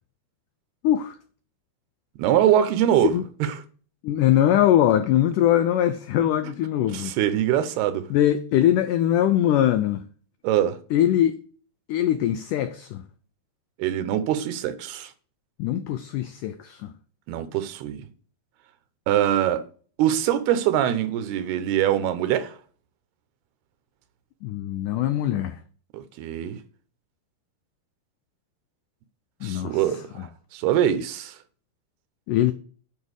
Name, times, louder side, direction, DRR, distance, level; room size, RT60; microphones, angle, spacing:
voice 1, 0.8-1.2 3.0-3.2 4.0-7.2 8.1-10.1 10.9-11.4 11.9-13.0 15.6-16.9 24.4-25.6 29.4-29.9 32.3-32.5, left 11 dB, 85° left, 1.8 m, -22 dB
voice 2, 2.2-3.1 3.4-3.5 6.4-6.5 6.9-8.1 10.4-10.8 13.8-15.1 17.3-18.1 19.1-19.6 20.0-22.6 25.9-26.6 29.4-31.4, right 11 dB, 85° right, 3.0 m, -23 dB
9.4 x 5.5 x 8.0 m
omnidirectional pair, 4.5 m